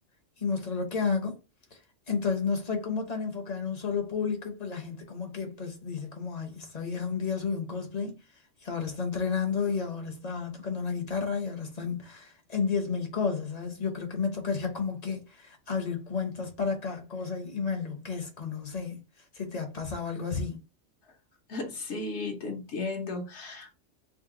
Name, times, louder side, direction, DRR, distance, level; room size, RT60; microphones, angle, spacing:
voice 1, 0.4-1.4 1.7-1.8 2.1-8.2 8.6-19.0 19.3-20.6, left 5 dB, 35° left, 0.8 m, -32 dB
voice 2, 21.5-23.7, left 3 dB, 65° left, 1.1 m, -35 dB
3.8 x 2.1 x 3.6 m
omnidirectional pair, 1.3 m